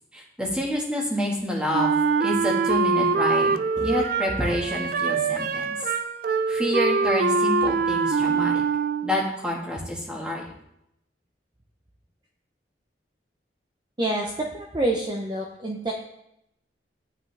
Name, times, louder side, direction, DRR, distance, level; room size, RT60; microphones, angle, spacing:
voice 1, 0.1-1.9 2.2-5.7 6.5-8.5 9.0-10.5, equal, 5° right, -2 dB, 1.6 m, -28 dB
Wind instrument woodwind instrument, 1.7-9.3, right 4 dB, 50° right, 0.3 m, -24 dB
voice 2, 14.0-15.9, right 1 dB, 25° right, 0 dB, 0.7 m, -27 dB
9.7 x 8.6 x 3.4 m, 0.81 s
head